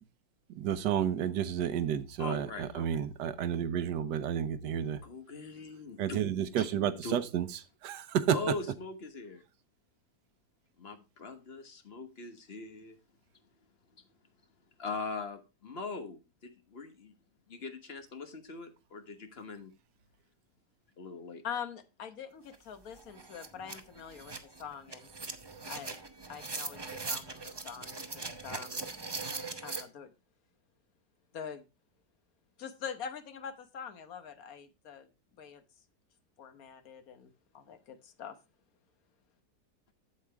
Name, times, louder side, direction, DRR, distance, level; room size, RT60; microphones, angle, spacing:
voice 1, 0.6-5.0 6.0-7.5 7.8-8.4, right 9 dB, 90° right, 1.4 m, -31 dB
voice 2, 2.2-2.9 5.0-6.2 6.6-6.7 7.0-7.2 8.3-9.4 10.8-13.0 14.8-17.1 17.5-19.7 21.0-21.4, left 4 dB, 40° left, 1.3 m, -41 dB
voice 3, 21.4-24.3 24.6-25.1 25.7-25.9 26.3-27.4 27.6-28.8 29.6-30.1 31.3-31.6 32.6-35.1 35.4-35.6 36.4-38.3, left 7 dB, 60° left, 1.4 m, -44 dB
sound 1, 22.5-22.6 22.9-29.8, right 3 dB, 35° right, 0.4 m, -41 dB
8.5 x 7.5 x 3.4 m
omnidirectional pair, 1.8 m